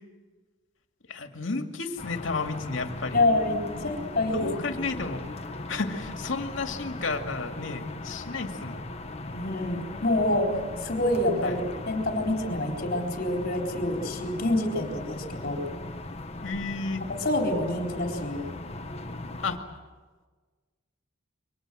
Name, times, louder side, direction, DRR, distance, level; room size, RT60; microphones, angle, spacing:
voice 1, 1.1-3.2 4.3-5.2 5.7-8.9 11.4-11.6 16.4-17.0 19.4-19.7, left 3 dB, 70° left, 5 dB, 2.3 m, -32 dB
sound 1, 2.0-19.6, left 2 dB, 35° left, 1.3 m, -39 dB
voice 2, 3.1-5.1 9.3-15.6 17.2-18.5, left 1 dB, 50° left, 2 dB, 4.1 m, -27 dB
28.5 x 24.5 x 7.7 m, 1.4 s
head